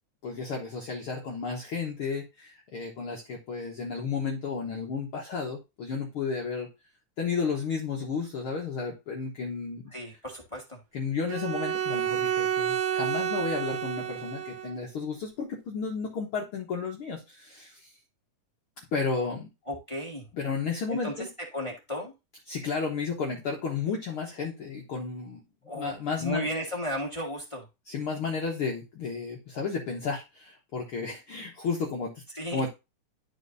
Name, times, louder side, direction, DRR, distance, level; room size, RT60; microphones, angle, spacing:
voice 1, 0.2-6.7 7.2-9.9 10.9-17.9 18.9-19.5 20.3-21.3 22.5-25.4 25.7-26.5 27.9-32.2 32.5-32.7, left 5 dB, 55° left, -1 dB, 1.8 m, -32 dB
voice 2, 9.9-10.8 19.7-20.3 20.9-21.3 21.5-22.1 25.6-27.7 32.3-32.6, equal, 15° left, -1 dB, 1.3 m, -34 dB
Bowed string instrument, 11.3-14.8, right 9 dB, 75° right, 1.7 m, -30 dB
12.0 x 4.4 x 2.6 m, 0.25 s
omnidirectional pair, 3.5 m